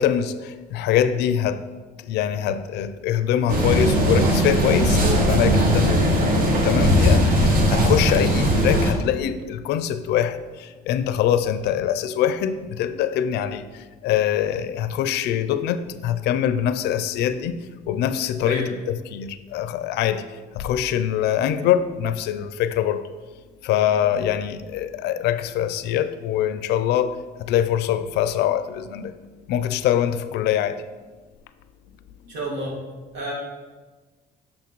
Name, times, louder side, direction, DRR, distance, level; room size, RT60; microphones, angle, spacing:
voice 1, 0.0-1.6 2.0-6.3 6.6-17.6 17.9-20.3 20.5-23.1 23.6-29.1 29.5-30.8, left 10 dB, 80° left, 12 dB, 0.4 m, -23 dB
sound 1, 3.5-8.9, equal, 55° right, 1.1 m, -19 dB
voice 2, 32.3-32.8 33.1-33.3, equal, 80° right, -3 dB, 1.8 m, -29 dB
6.4 x 5.7 x 3.1 m, 1.3 s
cardioid pair, 110°, 17 cm